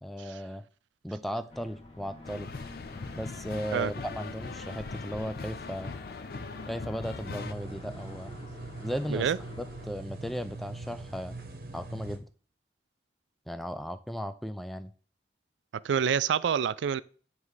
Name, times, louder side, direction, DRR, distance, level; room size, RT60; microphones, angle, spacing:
voice 1, 0.0-0.6 1.0-2.5 3.1-5.9 6.7-8.3 8.8-9.3 9.6-11.4 11.7-12.3 13.5-14.9, equal, ahead, 0.3 m, -36 dB
sound 1, 1.5-9.9, left 2 dB, 30° left, 1.2 m, -49 dB
sound 2, 2.2-7.5, left 4 dB, 55° left, 0.5 m, -40 dB
sound 3, 7.2-12.2, right 2 dB, 55° right, 1.0 m, -42 dB
voice 2, 15.8-17.0, right 7 dB, 85° right, 0.3 m, -27 dB
9.2 x 3.2 x 4.8 m
head